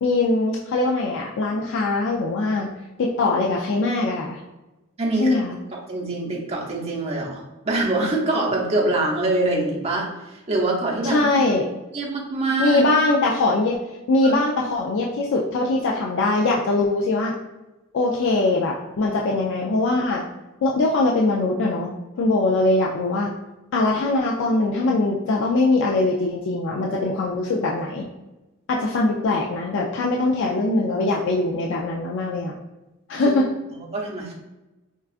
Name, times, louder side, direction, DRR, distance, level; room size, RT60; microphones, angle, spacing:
voice 1, 0.0-2.7 3.0-4.4 5.2-5.6 11.0-11.7 12.6-13.8 14.1-17.3 17.9-20.2 20.6-21.9 22.2-23.3 23.7-28.0 28.7-32.5 33.1-33.5, left 2 dB, 65° left, -1 dB, 0.4 m, -22 dB
voice 2, 5.0-5.4 5.9-11.3 11.9-12.9 14.2-14.3 33.2-33.3 33.9-34.3, right 2 dB, 30° right, -3 dB, 0.7 m, -24 dB
4.4 x 2.3 x 2.4 m, 1.0 s
head